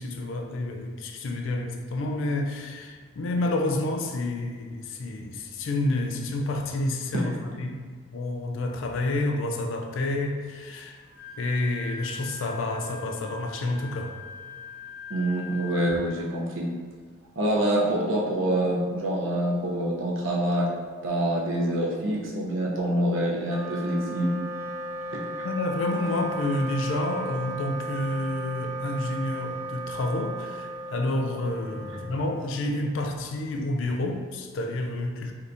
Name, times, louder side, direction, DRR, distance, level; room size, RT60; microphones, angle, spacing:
voice 1, 0.0-7.3 7.6-11.0 11.4-14.1 25.4-35.3, left 2 dB, 65° left, 3 dB, 0.4 m, -29 dB
Wind instrument woodwind instrument, 11.0-16.3, left 4 dB, 45° left, 0.7 m, -42 dB
voice 2, 15.1-16.7 17.4-20.7 21.0-24.4 25.1-25.4, right 1 dB, 70° right, -3 dB, 0.6 m, -26 dB
Wind instrument woodwind instrument 2, 23.3-33.0, right 2 dB, 15° right, 0.4 m, -36 dB
3.4 x 2.8 x 2.5 m, 1.5 s
head